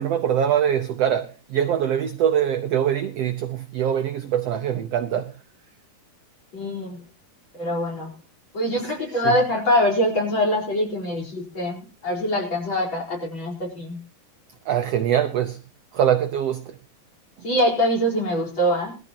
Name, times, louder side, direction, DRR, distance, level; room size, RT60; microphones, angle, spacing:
voice 1, 0.0-5.4 8.8-9.4 14.6-15.6 15.9-16.8, right 9 dB, 80° right, 1.4 m, -23 dB
voice 2, 6.5-7.0 7.5-8.1 8.5-14.0 17.4-19.0, equal, 35° left, 5.1 m, -24 dB
21.0 x 14.0 x 2.9 m
omnidirectional pair, 4.0 m